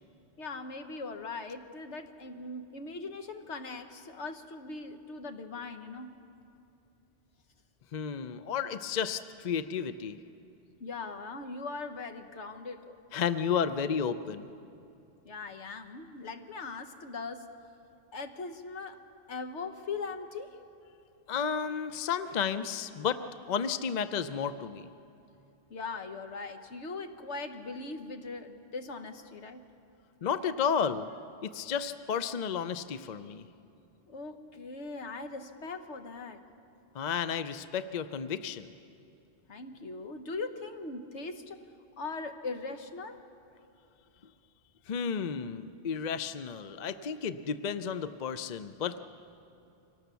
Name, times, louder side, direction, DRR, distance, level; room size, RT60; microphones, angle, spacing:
voice 1, 0.4-6.2 10.8-13.0 15.2-17.5 18.1-19.0 19.3-20.6 25.7-29.6 34.1-36.4 39.5-41.6 42.0-43.2, left 3 dB, 70° left, 7 dB, 1.5 m, -40 dB
voice 2, 7.9-10.2 13.1-14.5 21.3-23.2 23.5-24.9 30.2-31.1 31.4-33.4 36.9-38.7 44.9-49.0, left 7 dB, 45° left, 12 dB, 0.6 m, -32 dB
25.0 x 18.0 x 7.0 m, 2.7 s
omnidirectional pair, 1.2 m